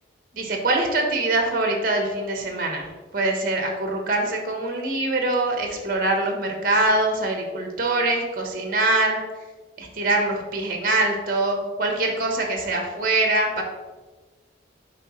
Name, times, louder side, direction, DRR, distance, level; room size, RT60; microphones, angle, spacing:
voice 1, 0.3-2.9 3.1-9.2 9.8-13.6, right 2 dB, 50° right, 2 dB, 1.2 m, -23 dB
7.6 x 4.9 x 3.2 m, 1.2 s
head